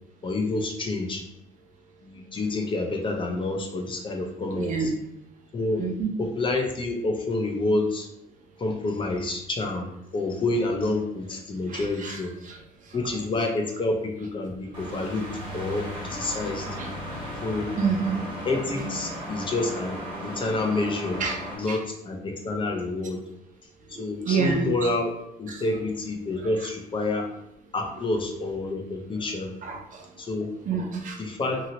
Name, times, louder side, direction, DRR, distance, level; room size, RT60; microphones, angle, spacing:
voice 1, 0.2-1.2 2.0-4.9 5.5-5.9 6.2-8.1 8.6-9.9 10.1-12.3 12.9-15.2 15.5-16.7 17.4-17.7 18.5-21.2 21.6-23.2 24.0-25.1 25.4-27.3 27.7-29.5 30.2-30.5 31.2-31.6, left 2 dB, 30° left, 2 dB, 0.7 m, -28 dB
voice 2, 4.5-4.9 5.8-6.1 11.7-12.2 12.4-12.6 16.8-16.9 17.8-18.2 21.2-21.4 21.7-21.8 24.2-24.7 25.5-25.6 29.6-30.0 30.7-31.2, right 5 dB, 50° right, 2 dB, 0.7 m, -27 dB
sound 1, 14.7-21.6, equal, 30° right, 1.4 m, -35 dB
2.8 x 2.8 x 2.8 m, 0.81 s
cardioid pair, 110°, 17 cm